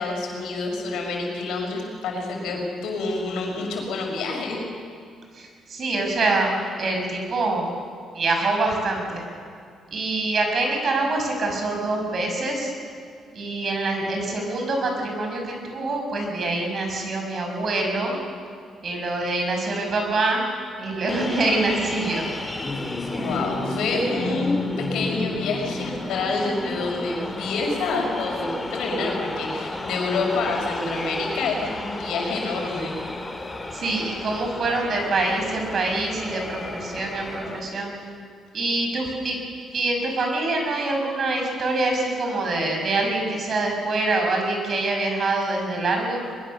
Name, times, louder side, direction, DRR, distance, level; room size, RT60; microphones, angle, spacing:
voice 1, 0.0-4.6 23.1-33.0, left 3 dB, 85° left, 0 dB, 5.8 m, -27 dB
voice 2, 5.3-6.5 6.8-7.7 8.1-9.2 9.9-12.7 13.3-18.2 18.8-20.5 20.8-22.2 33.7-37.9 38.5-39.4 39.7-46.2, right 2 dB, 50° right, 2 dB, 6.3 m, -25 dB
sound 1, 21.1-37.6, left 2 dB, 20° left, 2.5 m, -32 dB
22.5 x 22.0 x 6.7 m, 2.2 s
cardioid pair, 90°, 0 cm